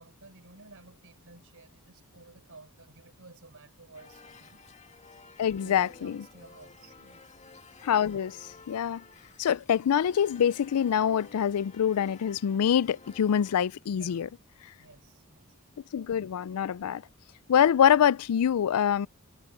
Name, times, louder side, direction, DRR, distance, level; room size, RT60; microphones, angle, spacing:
voice 1, 0.0-4.6 5.6-7.3 13.9-14.3 14.8-15.5, right 2 dB, 65° right, 5.0 m, -53 dB
sound 1, 3.9-13.6, left 4 dB, 30° left, 1.9 m, -53 dB
voice 2, 5.4-6.2 7.8-8.4 8.7-9.0 9.4-14.3 15.9-17.0 17.5-19.1, left 8 dB, 80° left, 0.4 m, -25 dB
head